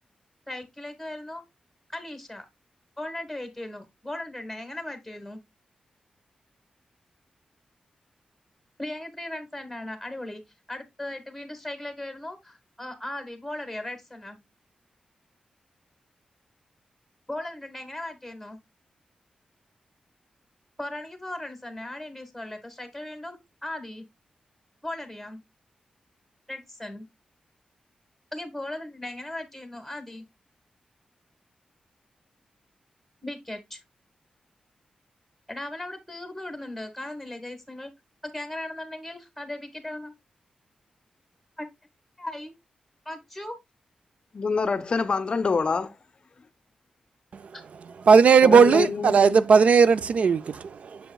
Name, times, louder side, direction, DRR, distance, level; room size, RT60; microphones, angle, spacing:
voice 1, 0.5-1.4 1.9-2.5 3.0-5.4 8.8-10.4 10.7-14.4 17.3-18.6 20.8-24.0 24.8-25.4 26.5-27.1 28.3-30.2 33.2-33.8 35.5-37.9 38.2-40.1 41.6-41.7 42.2-42.5 43.0-43.6 47.5-47.6, left 1 dB, ahead, 1.5 m, -37 dB
voice 2, 44.3-45.9 48.4-49.4, left 4 dB, 40° left, 0.5 m, -26 dB
voice 3, 48.1-51.0, right 5 dB, 60° right, 0.3 m, -17 dB
7.8 x 6.9 x 2.2 m
wide cardioid pair, 130°, 3 cm